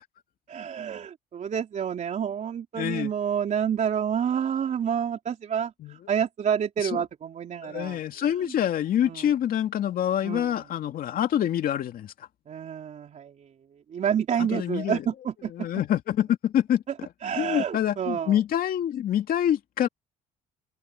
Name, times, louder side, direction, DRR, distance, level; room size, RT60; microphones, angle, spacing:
voice 1, 0.5-8.6 9.0-9.3 10.2-10.6 12.5-13.5 13.9-15.5 17.2-18.4, right 8 dB, 45° right, 3.7 m, -29 dB
voice 2, 2.8-3.1 5.8-6.0 6.8-7.0 7.6-12.1 14.4-15.1 15.5-17.1 17.4-19.9, left 10 dB, 60° left, 2.4 m, -26 dB
cardioid pair, 110°, 17 cm